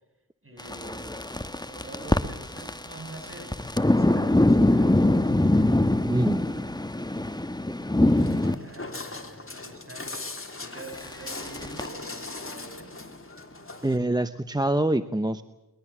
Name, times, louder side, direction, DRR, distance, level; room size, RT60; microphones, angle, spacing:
voice 1, 0.4-1.2 1.6-5.8 7.9-10.2 10.6-12.9, right 1 dB, 40° right, 5 dB, 7.3 m, -45 dB
sound 1, 0.6-8.5 11.0-11.9, left 1 dB, 10° left, 1.3 m, -23 dB
voice 2, 6.1-6.4 13.8-15.4, right 1 dB, 10° right, 11 dB, 0.9 m, -25 dB
Walk footsteps, 8.2-14.0, left 3 dB, 40° left, 3.3 m, -39 dB
22.5 x 21.5 x 7.3 m, 0.99 s
cardioid pair, 50°, 34 cm